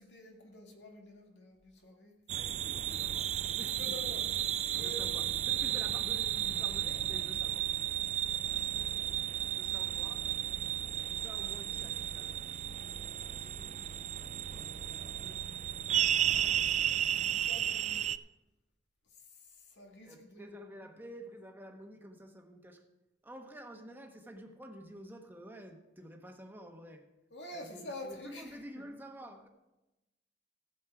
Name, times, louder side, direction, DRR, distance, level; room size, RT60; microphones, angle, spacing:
voice 1, 0.0-2.1 3.7-4.2 4.7-5.1 8.4-9.2 16.9-18.0 19.3-20.7 27.3-28.6, left 1 dB, 90° left, 1 dB, 2.1 m, -48 dB
voice 2, 2.3-4.0 4.6-7.7 9.4-10.3 11.0-12.7 13.3-15.5 15.9-16.2 20.0-22.8 23.2-27.1 27.5-29.5, right 1 dB, 10° right, 3 dB, 1.2 m, -50 dB
sound 1, 2.3-18.2, right 10 dB, 40° right, 0.3 m, -33 dB
14.5 x 7.6 x 4.8 m, 0.99 s
head